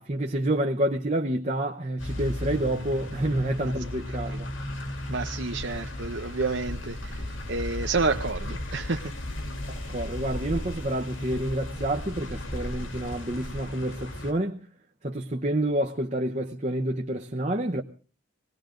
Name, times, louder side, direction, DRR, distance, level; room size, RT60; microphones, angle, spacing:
voice 1, 0.0-4.5 9.9-14.7 15.0-17.8, right 1 dB, 35° right, 0.9 m, -28 dB
sound 1, 2.0-14.3, left 1 dB, 80° left, 3.2 m, -35 dB
voice 2, 5.1-9.1, right 3 dB, 60° right, 0.8 m, -30 dB
20.5 x 18.0 x 3.9 m
head